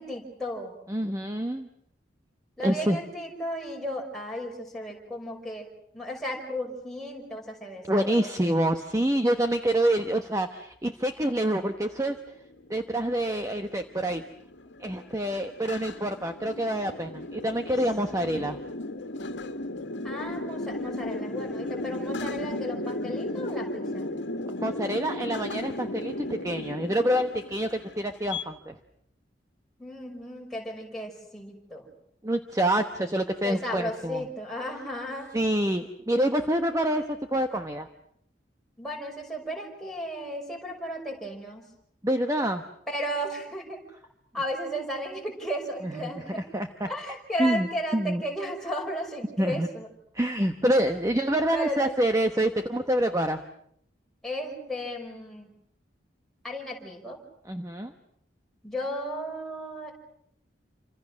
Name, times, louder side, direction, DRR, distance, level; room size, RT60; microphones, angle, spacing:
voice 1, 0.0-0.7 2.6-5.7 5.9-8.6 18.1-18.4 20.0-24.1 29.8-31.9 33.4-35.3 38.8-41.7 42.9-43.8 44.3-46.4 46.9-49.9 51.5-51.9 54.2-55.5 56.4-57.2 58.6-59.9, equal, ahead, -1 dB, 5.3 m, -34 dB
voice 2, 0.9-1.7 2.6-3.0 7.9-12.2 12.7-14.2 14.8-18.6 24.6-28.8 32.2-34.2 35.3-37.9 42.0-42.6 46.0-46.1 46.4-46.9 47.4-47.7 47.9-48.2 49.4-49.7 50.1-53.4 57.5-57.9, right 1 dB, 20° right, 6 dB, 1.1 m, -26 dB
sound 1, 12.2-28.4, left 1 dB, 90° left, 1.7 m, -35 dB
28.5 x 26.0 x 6.3 m, 0.71 s
head